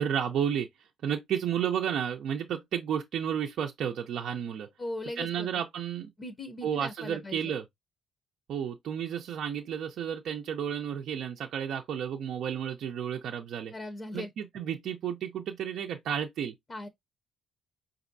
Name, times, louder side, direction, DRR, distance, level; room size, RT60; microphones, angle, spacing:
voice 1, 0.0-4.7 5.2-6.1 6.6-7.6 8.5-13.7 14.1-16.5, right 8 dB, 70° right, 0.5 m, -32 dB
voice 2, 4.8-5.5 6.2-7.5 13.7-14.3 16.7-16.9, left 1 dB, 30° left, 0.7 m, -38 dB
5.1 x 2.6 x 2.6 m
cardioid pair, 90°, 0 cm